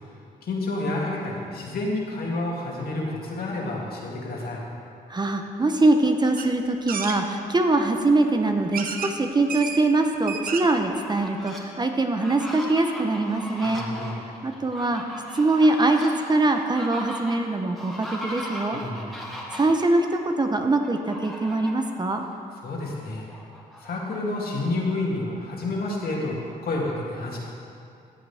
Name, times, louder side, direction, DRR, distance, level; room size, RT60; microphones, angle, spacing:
voice 1, 0.4-4.6 13.6-14.2 18.7-19.2 22.6-23.3 23.8-27.4, left 2 dB, 65° left, -3 dB, 2.3 m, -29 dB
voice 2, 5.1-13.8 14.4-15.0 15.3-18.8 19.5-22.2, right 2 dB, 25° right, 5 dB, 0.8 m, -23 dB
sound 1, 6.4-6.5 6.9-7.2 8.1-8.2 8.7-9.1 9.5-9.8 10.1-10.8 11.2-11.3 11.5-11.6, right 6 dB, 60° right, 0.8 m, -31 dB
Fowl, 10.5-11.6 12.1-19.8 20.8-21.9 22.3-22.4 22.8-24.5, left 1 dB, ahead, 2.0 m, -38 dB
14.5 x 7.9 x 3.5 m, 2.5 s
cardioid pair, 70°, 17 cm